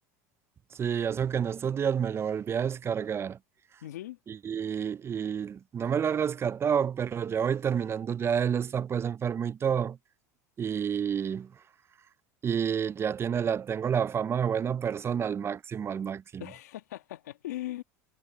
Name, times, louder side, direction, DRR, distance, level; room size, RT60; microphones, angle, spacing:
voice 1, 0.7-3.4 4.3-10.0 10.6-11.6 12.4-16.5, right 7 dB, 30° right, 0.5 m, -29 dB
voice 2, 3.8-4.2 16.4-17.8, left 15 dB, 85° left, 2.2 m, -39 dB
hypercardioid pair, 95°, 9 cm